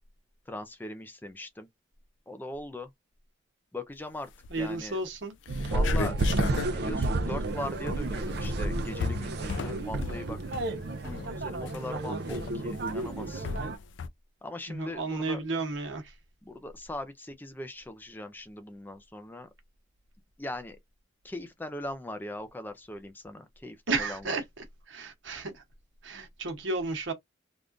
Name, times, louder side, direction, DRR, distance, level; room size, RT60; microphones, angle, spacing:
voice 1, 0.5-1.7 2.3-2.9 3.7-4.3 4.5-5.0 5.7-6.2 6.7-10.4 11.0-13.5 14.4-15.4 16.4-19.5 20.4-20.8 21.2-24.4, left 1 dB, 10° left, 0.4 m, -40 dB
sound 1, 4.3-4.8 5.2-5.3 5.5-14.1, left 5 dB, 75° left, 0.4 m, -37 dB
voice 2, 4.5-5.3 14.7-16.1 23.9-24.4 24.9-25.6 26.0-27.1, right 3 dB, 90° right, 1.0 m, -32 dB
sound 2, 5.5-13.8, right 2 dB, 60° right, 0.5 m, -31 dB
3.4 x 2.4 x 2.5 m
head